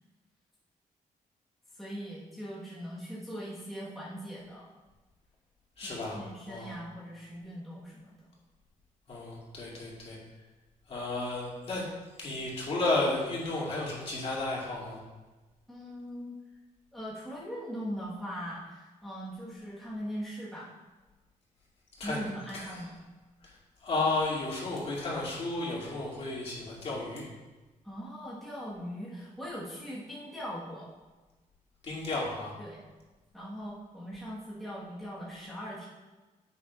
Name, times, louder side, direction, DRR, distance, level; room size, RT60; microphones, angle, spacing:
voice 1, 1.7-4.7 5.8-8.1 15.7-16.4 16.9-20.7 22.0-22.9 27.8-30.9 32.6-32.8 33.3-35.9, equal, ahead, -8 dB, 1.4 m, -40 dB
voice 2, 5.8-6.2 6.5-6.7 9.1-10.2 10.9-11.9 12.2-15.0 22.0-22.8 23.4-23.5 23.8-27.2 31.8-32.5, left 2 dB, 45° left, -6 dB, 2.6 m, -33 dB
9.5 x 8.2 x 2.5 m, 1.2 s
wide cardioid pair, 175°, 14 cm